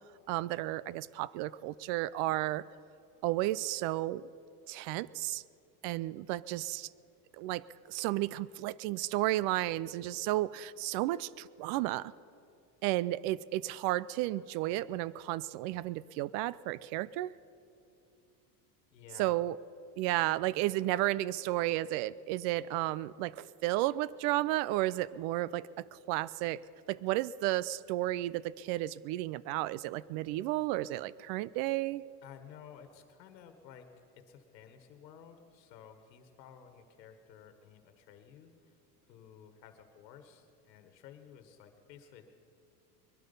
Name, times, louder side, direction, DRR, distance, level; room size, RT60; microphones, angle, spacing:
voice 1, 0.3-2.6 3.2-4.2 4.7-5.4 5.8-6.9 7.4-12.1 12.8-17.3 19.2-19.6 20.0-25.7 26.1-26.6 26.9-32.0, right 16 dB, 55° right, 20 dB, 0.5 m, -33 dB
voice 2, 18.9-19.3 32.2-33.9 34.2-38.8 39.1-42.3, left 8 dB, 90° left, 7 dB, 1.5 m, -54 dB
21.5 x 12.0 x 5.4 m, 2.6 s
supercardioid pair, 120°, 49 cm